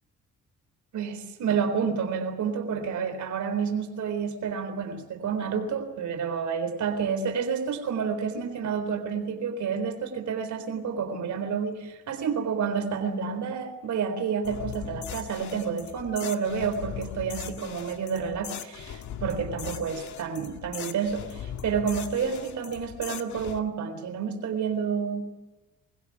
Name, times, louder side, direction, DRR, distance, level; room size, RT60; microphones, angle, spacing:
voice 1, 0.9-25.3, right 6 dB, 70° right, 6 dB, 4.0 m, -29 dB
sound 1, 14.4-23.6, left 9 dB, 70° left, 1.8 m, -39 dB
24.0 x 16.5 x 10.0 m, 1.1 s
cardioid pair, 90°, 30 cm